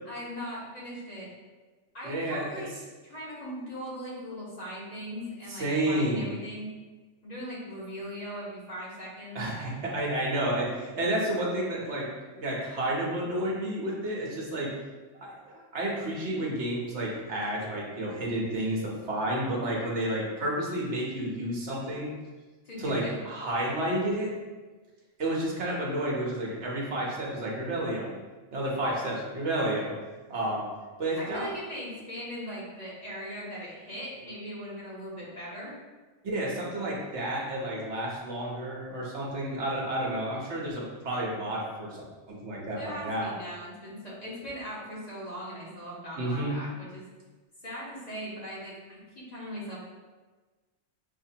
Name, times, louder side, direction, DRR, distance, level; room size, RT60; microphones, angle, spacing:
voice 1, 0.0-1.3 1.9-2.7 3.0-6.7 7.2-9.4 22.6-23.2 31.2-35.7 42.7-47.1 47.6-49.8, equal, 35° left, -8 dB, 1.5 m, -39 dB
voice 2, 2.0-2.6 5.5-6.3 9.3-12.1 12.3-14.7 15.2-22.1 22.8-24.4 25.2-28.1 28.5-29.9 30.3-30.7 31.0-31.5 36.2-42.0 42.3-43.3 46.2-46.6, right 1 dB, 65° right, -3 dB, 1.3 m, -31 dB
6.6 x 2.7 x 2.8 m, 1.3 s
omnidirectional pair, 1.3 m